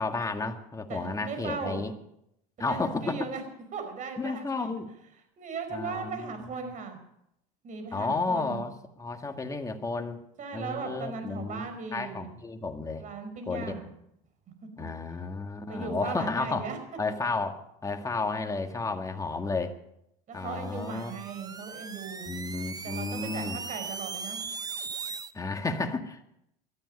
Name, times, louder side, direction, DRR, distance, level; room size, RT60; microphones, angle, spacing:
voice 1, 0.0-1.9 2.6-3.2 4.2-4.9 5.7-6.3 7.9-8.7 9.0-10.2 10.5-11.6 11.9-13.0 13.5-13.7 14.8-16.7 17.0-19.7 20.3-21.1 22.3-23.6 25.3-26.2, left 3 dB, 15° left, 5 dB, 1.9 m, -32 dB
voice 2, 0.9-1.8 2.6-3.4 3.7-4.4 5.4-7.0 7.6-8.6 10.4-12.3 13.0-13.9 15.7-16.8 20.3-22.3 22.8-24.4, right 5 dB, 40° right, 7 dB, 5.2 m, -37 dB
sound 1, 20.5-25.3, right 5 dB, 20° right, 0.9 m, -39 dB
20.0 x 13.0 x 5.4 m, 0.78 s
supercardioid pair, 100°, 20 cm